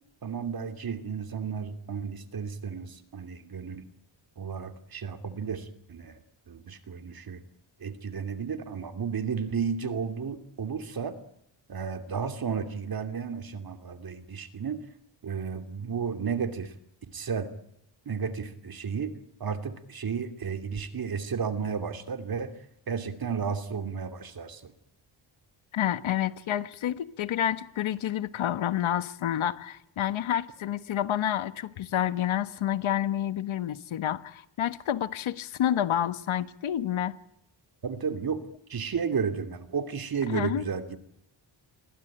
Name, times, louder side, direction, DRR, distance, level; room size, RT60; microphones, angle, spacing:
voice 1, 0.2-3.8 4.4-6.2 6.5-7.4 7.8-11.2 11.7-14.8 15.2-16.7 17.1-17.5 18.1-19.1 19.4-22.5 22.9-24.7 37.8-38.4 38.7-41.0, right 6 dB, 50° right, 2.8 m, -33 dB
voice 2, 25.7-37.2 40.3-40.7, left 11 dB, 85° left, 1.5 m, -29 dB
30.0 x 22.0 x 8.9 m
wide cardioid pair, 120°, 47 cm